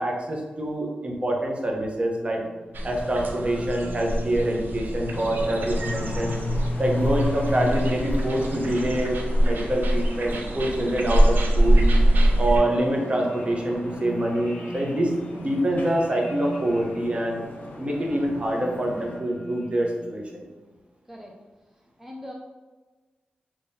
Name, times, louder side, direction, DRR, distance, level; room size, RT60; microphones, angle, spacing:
voice 1, 0.0-2.4 2.8-6.4 6.8-11.8 12.4-17.4 17.8-20.4, right 1 dB, 35° right, -1 dB, 0.9 m, -25 dB
sound 1, 2.1-20.3, left 2 dB, 20° left, 1.0 m, -37 dB
sound 2, 2.7-12.6, right 1 dB, 70° right, 0.5 m, -24 dB
sound 3, 5.1-19.2, left 1 dB, 65° left, 0.8 m, -40 dB
voice 2, 22.0-22.3, left 1 dB, 10° right, -1 dB, 0.5 m, -40 dB
3.7 x 3.0 x 2.7 m, 1.3 s
cardioid pair, 55°, 3 cm